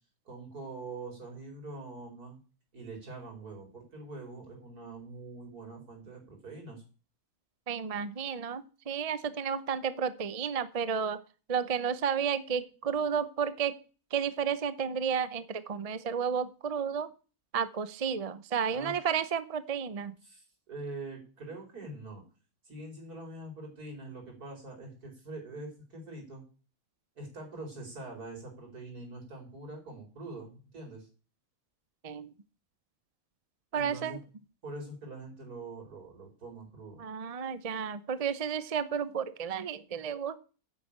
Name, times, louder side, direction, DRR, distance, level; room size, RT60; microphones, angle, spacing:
voice 1, 0.2-2.4 2.7-6.8 18.7-19.0 20.2-22.2 22.6-26.4 27.1-31.1 33.7-34.2 34.6-37.0, right 2 dB, 75° right, 2 dB, 5.2 m, -44 dB
voice 2, 7.7-11.2 11.5-13.7 14.1-17.1 17.5-20.1 32.0-32.3 33.7-34.2 37.0-40.4, right 7 dB, 35° right, 14 dB, 0.6 m, -32 dB
9.9 x 7.9 x 8.8 m, 0.37 s
omnidirectional pair, 1.6 m